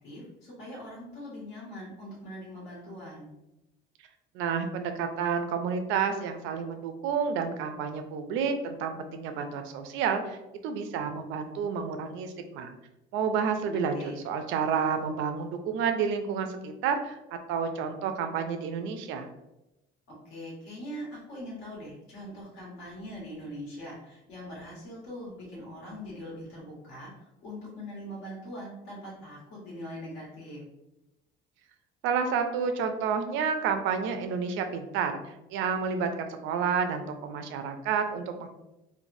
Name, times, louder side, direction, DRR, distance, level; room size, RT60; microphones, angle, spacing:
voice 1, 0.0-3.3 13.6-14.2 20.1-27.1 27.4-30.6, equal, 75° left, -5 dB, 1.4 m, -42 dB
voice 2, 4.3-10.4 10.6-12.7 13.1-17.2 17.5-19.3 32.0-35.1 35.5-38.5, right 6 dB, 75° right, 6 dB, 0.4 m, -30 dB
3.2 x 2.1 x 2.6 m, 0.92 s
cardioid pair, 175°, 20 cm